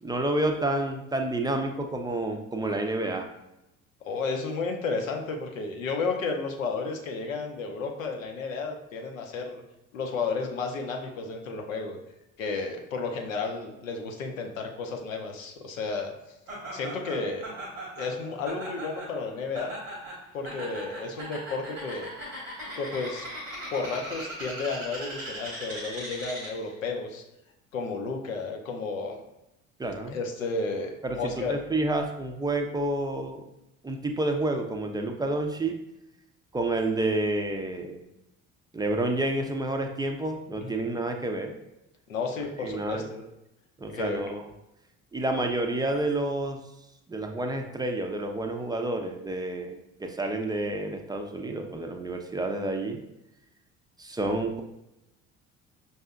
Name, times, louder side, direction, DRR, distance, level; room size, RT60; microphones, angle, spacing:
voice 1, 0.0-3.3 29.8-30.2 31.0-33.4 33.8-35.8 36.5-38.1 38.7-41.5 42.6-43.0 43.8-44.4 45.1-46.6 47.1-53.0 54.0-54.6, right 2 dB, 10° right, 4 dB, 0.4 m, -29 dB
voice 2, 4.0-9.6 9.9-12.0 12.4-16.1 16.7-17.4 18.0-19.7 20.3-22.1 22.8-23.3 23.7-27.2 27.7-29.2 30.1-31.6 40.6-40.7 42.1-43.3 43.9-44.2, left 4 dB, 85° left, 2 dB, 0.6 m, -32 dB
Laughter, 16.5-26.7, right 1 dB, 85° right, 1.1 m, -39 dB
5.4 x 2.7 x 2.3 m, 0.91 s
figure-of-eight pair, 55°, 39 cm